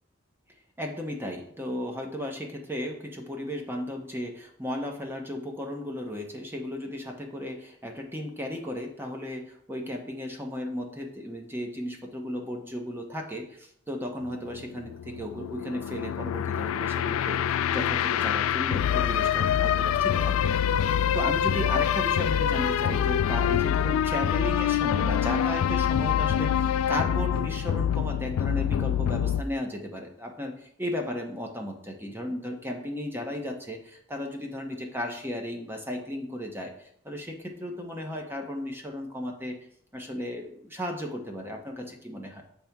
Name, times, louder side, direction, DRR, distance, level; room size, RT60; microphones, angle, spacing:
voice 1, 0.8-20.8 21.1-39.6 39.9-42.4, left 1 dB, 10° right, 2 dB, 0.8 m, -35 dB
sound 1, 14.2-29.4, left 9 dB, 90° left, 0.3 m, -25 dB
6.8 x 3.4 x 5.8 m, 0.67 s
head